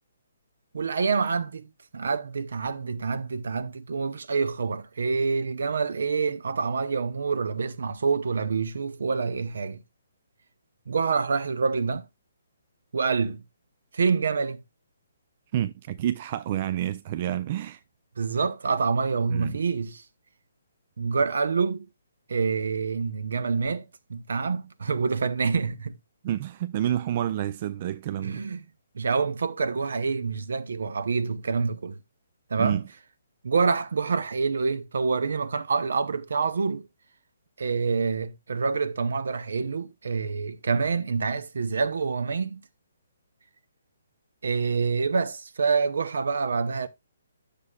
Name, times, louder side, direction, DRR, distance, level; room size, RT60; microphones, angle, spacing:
voice 1, 0.7-9.8 10.9-12.1 12.9-13.4 13.9-14.6 18.2-20.0 21.0-21.9 22.3-25.9 28.2-28.6 28.9-32.0 32.5-32.8 33.4-36.9 37.6-42.6 44.4-46.9, right 5 dB, 65° right, 0.7 m, -27 dB
voice 2, 15.5-17.8 19.3-19.6 26.2-28.5 32.6-32.8, right 11 dB, 40° right, 0.4 m, -29 dB
11.0 x 6.7 x 2.3 m
figure-of-eight pair, 135°, 0 cm